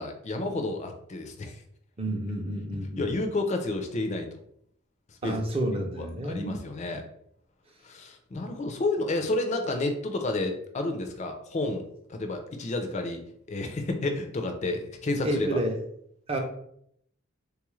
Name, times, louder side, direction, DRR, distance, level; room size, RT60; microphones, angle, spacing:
voice 1, 0.0-1.6 3.0-4.4 5.2-5.4 6.0-7.0 7.8-13.2 13.5-15.6, left 2 dB, 30° left, 5 dB, 0.4 m, -30 dB
voice 2, 2.0-3.1 5.2-6.6 8.3-8.5 15.2-15.8 16.3-16.4, right 1 dB, 25° right, 3 dB, 0.5 m, -30 dB
3.4 x 2.3 x 3.0 m, 0.70 s
head